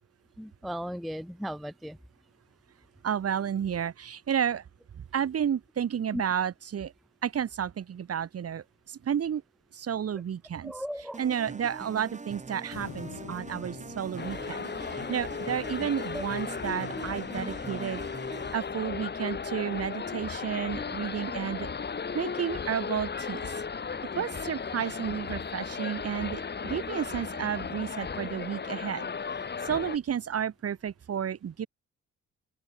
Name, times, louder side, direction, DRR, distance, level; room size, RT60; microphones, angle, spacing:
voice 1, 0.4-2.0 6.1-6.2 10.6-11.2 16.1-16.2 17.3-17.4, equal, ahead, 0.4 m, -36 dB
voice 2, 3.0-4.6 4.9-6.9 7.2-9.4 9.7-10.7 11.2-18.0 18.5-21.7 22.1-23.5 24.1-29.1 29.6-31.7, right 8 dB, 50° right, 2.5 m, -32 dB
sound 1, 11.1-18.8, right 3 dB, 25° right, 4.3 m, -43 dB
sound 2, 12.7-16.1, left 10 dB, 65° left, 3.0 m, -47 dB
sound 3, 14.2-30.0, left 5 dB, 35° left, 2.5 m, -35 dB
open air
cardioid pair, 90°, 30 cm